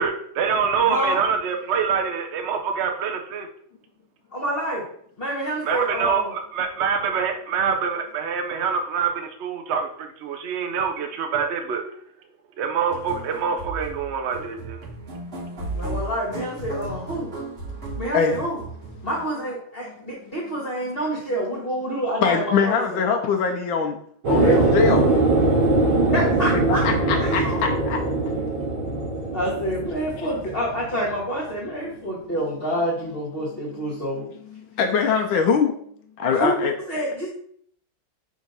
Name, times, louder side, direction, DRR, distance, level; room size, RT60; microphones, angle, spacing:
voice 1, 0.0-3.5 5.6-11.8 12.6-14.8, right 6 dB, 65° right, 5 dB, 0.7 m, -25 dB
voice 2, 0.8-1.2 4.3-4.8 5.2-6.3 15.7-17.3 18.0-18.6 19.0-23.0 24.4-24.7 26.1-26.9 27.2-27.6 29.3-34.2 36.3-37.3, equal, 30° left, -6 dB, 1.7 m, -27 dB
sound 1, 12.9-19.2, right 2 dB, 35° right, 1.4 m, -35 dB
voice 3, 17.8-18.4 22.2-24.0 24.3-25.0 26.8-28.7 30.2-30.3 34.5-35.7 36.2-36.7, left 6 dB, 85° left, 3 dB, 1.5 m, -23 dB
sound 2, 24.2-31.1, right 2 dB, 90° right, 2.1 m, -22 dB
4.9 x 3.6 x 5.5 m, 0.63 s
omnidirectional pair, 2.1 m